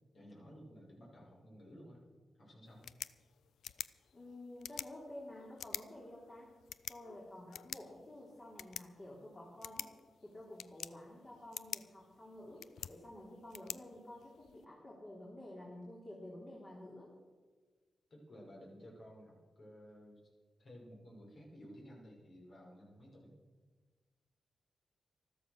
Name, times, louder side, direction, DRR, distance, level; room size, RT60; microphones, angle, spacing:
voice 1, 0.1-2.0 2.4-2.9 18.1-20.2 20.6-23.3, equal, 65° left, -3 dB, 5.8 m, -55 dB
sound 1, 2.6-14.6, left 9 dB, 85° left, 0.4 m, -49 dB
voice 2, 4.1-6.5 6.9-9.9 10.2-17.1, left 1 dB, 40° left, -4 dB, 3.7 m, -51 dB
13.0 x 13.0 x 6.5 m, 1.4 s
cardioid pair, 65°, 0 cm